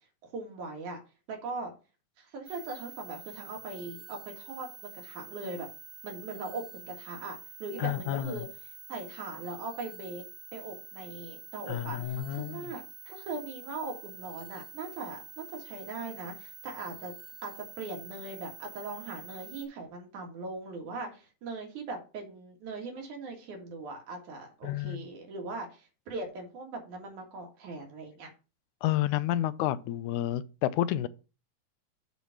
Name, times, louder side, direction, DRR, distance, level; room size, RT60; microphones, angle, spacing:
voice 1, 0.2-1.0 1.3-1.7 2.2-5.7 6.0-10.2 10.5-17.1 17.4-28.3, right 3 dB, 80° right, 3.3 m, -40 dB
sound 1, 2.5-19.7, right 6 dB, 55° right, 1.1 m, -48 dB
voice 2, 7.8-8.5 11.7-12.7 24.6-25.0 28.8-31.1, left 13 dB, 90° left, 2.0 m, -30 dB
8.2 x 4.1 x 5.8 m
omnidirectional pair, 3.4 m